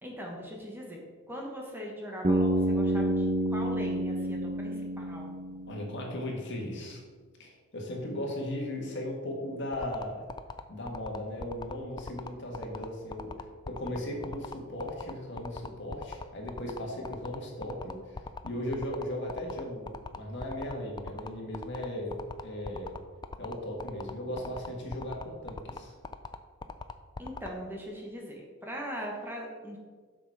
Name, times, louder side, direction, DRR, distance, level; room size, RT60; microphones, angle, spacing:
voice 1, 0.0-5.3 27.2-29.8, equal, 10° right, -1 dB, 1.2 m, -40 dB
Bass guitar, 2.2-6.2, right 1 dB, 35° right, 0.8 m, -29 dB
voice 2, 5.7-7.0 7.4-10.2 10.7-22.1 22.4-22.9 23.4-25.9, left 1 dB, 55° left, 0 dB, 1.7 m, -37 dB
sound 1, 9.7-27.5, left 4 dB, 20° left, 0.3 m, -40 dB
6.9 x 6.1 x 4.7 m, 1.5 s
head